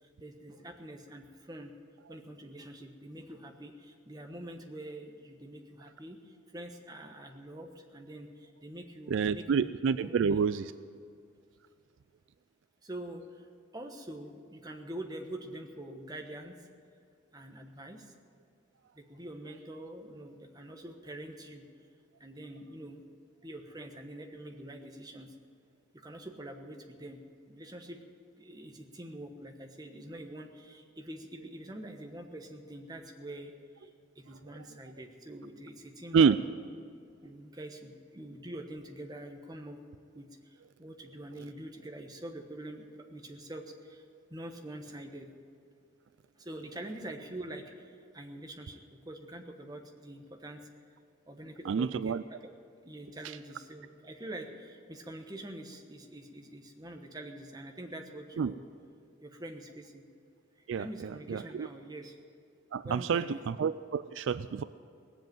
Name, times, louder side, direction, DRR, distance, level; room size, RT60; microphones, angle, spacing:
voice 1, 0.2-1.7 2.1-6.2 6.5-9.7 10.0-10.6 12.8-13.5 13.7-16.6 17.3-18.1 19.0-21.6 22.2-23.0 23.4-25.3 25.9-27.2 27.5-28.0 28.4-33.5 33.8-33.9 34.1-36.4 37.2-39.8 40.1-44.0 44.3-45.3 46.4-48.8 49.0-50.7 51.3-52.1 52.4-52.5 52.8-58.6 59.2-60.0 60.8-62.2 62.8-63.4, right 1 dB, 20° right, 3 dB, 1.2 m, -45 dB
voice 2, 9.1-10.7 36.1-36.4 51.6-52.2 58.4-58.5 60.7-61.7 62.7-64.6, right 6 dB, 65° right, 14 dB, 0.3 m, -28 dB
18.0 x 7.8 x 9.2 m, 2.4 s
head